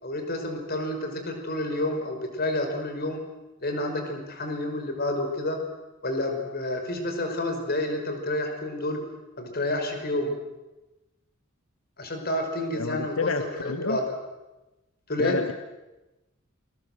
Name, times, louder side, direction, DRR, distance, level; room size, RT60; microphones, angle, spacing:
voice 1, 0.0-3.2 3.6-5.6 6.0-9.0 9.4-10.3 12.0-14.1 15.1-15.4, left 1 dB, 50° left, 4 dB, 5.2 m, -29 dB
voice 2, 12.7-14.0 15.2-15.5, left 4 dB, 85° left, 9 dB, 1.2 m, -29 dB
28.5 x 21.0 x 7.9 m, 1.0 s
head